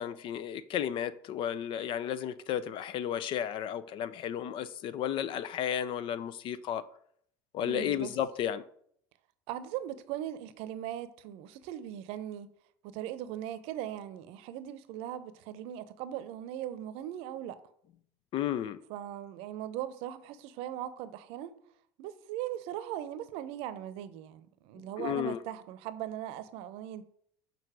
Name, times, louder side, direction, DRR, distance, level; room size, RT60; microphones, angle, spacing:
voice 1, 0.0-6.9 7.5-8.6 18.3-18.8 25.0-25.4, left 10 dB, 50° left, 0.5 m, -33 dB
voice 2, 7.6-8.1 9.5-12.5 12.8-17.6 18.9-21.5 22.0-27.0, right 11 dB, 65° right, 0.7 m, -39 dB
6.7 x 4.0 x 6.1 m
hypercardioid pair, 80°, 11 cm